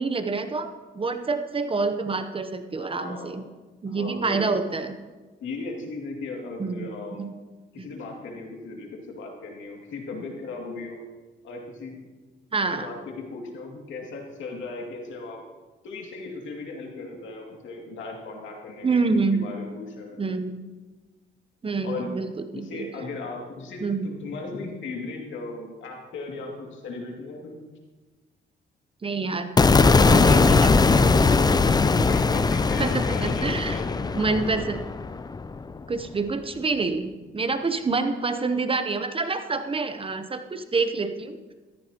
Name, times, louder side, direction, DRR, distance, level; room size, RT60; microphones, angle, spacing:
voice 1, 0.0-3.4 3.8-4.9 6.6-6.9 7.2-7.3 7.8-7.9 12.5-12.9 18.8-19.5 20.2-20.6 21.6-22.9 23.8-24.1 29.0-29.5 30.0-31.7 31.9-32.4 32.8-33.8 34.2-34.8 35.9-41.5, right 4 dB, 25° right, 9 dB, 0.8 m, -27 dB
voice 2, 2.8-3.3 3.9-4.5 5.4-7.2 7.7-11.0 11.4-12.0 12.7-15.4 15.8-20.3 21.8-22.1 22.5-27.6 30.9-34.5, left 3 dB, 75° left, 0 dB, 2.4 m, -37 dB
sound 1, 29.6-35.8, left 4 dB, 20° left, 0.5 m, -20 dB
14.0 x 13.5 x 2.9 m, 1.3 s
cardioid pair, 90°, 20 cm